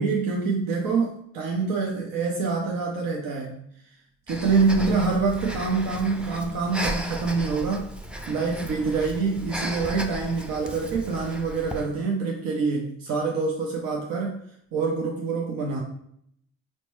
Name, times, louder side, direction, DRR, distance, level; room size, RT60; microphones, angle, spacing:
voice 1, 0.0-3.6 4.3-7.9 8.3-14.4 14.7-15.8, right 4 dB, 85° right, -1 dB, 0.7 m, -26 dB
Breathing, 4.3-12.0, equal, 5° right, 0.4 m, -35 dB
4.2 x 2.1 x 3.1 m, 0.68 s
supercardioid pair, 60°, 33 cm